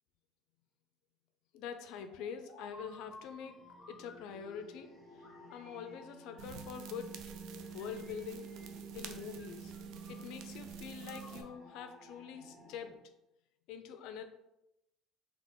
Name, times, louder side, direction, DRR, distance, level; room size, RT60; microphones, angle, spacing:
voice 1, 1.5-3.6 3.9-4.9 5.5-7.2 7.7-8.5 8.9-9.7 10.1-13.0 13.7-14.2, left 7 dB, 75° left, 8 dB, 0.5 m, -45 dB
sound 1, 2.0-4.8 5.2-7.0 7.7-8.8 9.1-10.5 11.0-12.8, left 2 dB, 25° left, 1.1 m, -58 dB
sound 2, 2.7-12.9, equal, ahead, 1.0 m, -55 dB
sound 3, 6.4-11.4, right 7 dB, 70° right, 0.5 m, -47 dB
3.6 x 2.9 x 3.9 m, 0.87 s
cardioid pair, 130°, 0 cm